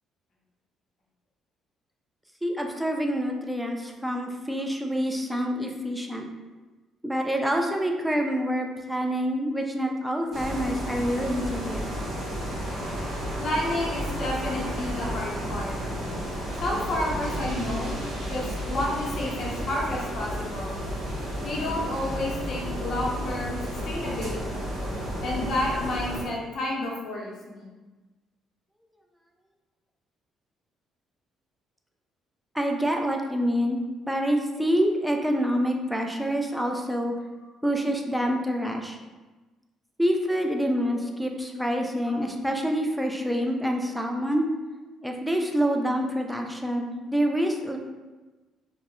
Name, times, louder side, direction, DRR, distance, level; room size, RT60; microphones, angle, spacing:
voice 1, 2.4-6.3 7.0-11.9 32.5-37.1 37.6-39.0 40.0-44.5 45.0-47.8, equal, 5° right, 2 dB, 0.3 m, -27 dB
sound 1, 10.3-26.2, equal, 55° right, 0.9 m, -32 dB
voice 2, 13.4-15.7 16.6-17.9 18.3-20.7 21.4-24.6 25.2-27.7 42.1-42.2, left 1 dB, 55° left, -3 dB, 0.6 m, -30 dB
2.2 x 2.0 x 2.9 m, 1.2 s
cardioid pair, 85°, 0 cm